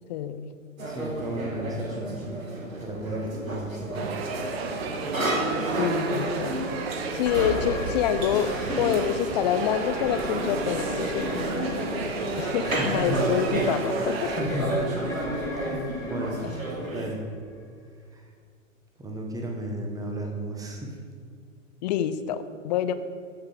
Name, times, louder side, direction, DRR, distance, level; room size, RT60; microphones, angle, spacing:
voice 1, 0.1-0.4 5.8-6.5 7.1-8.5 8.8-12.0 12.4-14.3 21.8-22.9, left 9 dB, 35° left, 12 dB, 0.6 m, -27 dB
voice 2, 0.8-2.4 2.8-4.1 12.6-13.4 14.3-14.9 15.6-16.5 16.8-17.2 18.1-18.3 19.0-21.0, right 1 dB, 10° right, 1 dB, 1.3 m, -33 dB
sound 1, 0.8-17.1, right 1 dB, 85° right, 1.8 m, -32 dB
sound 2, 3.9-14.4, right 4 dB, 50° right, 1.5 m, -33 dB
sound 3, 7.2-17.6, left 1 dB, 10° left, 1.6 m, -41 dB
14.0 x 5.5 x 5.1 m, 2.1 s
figure-of-eight pair, 110°, 39 cm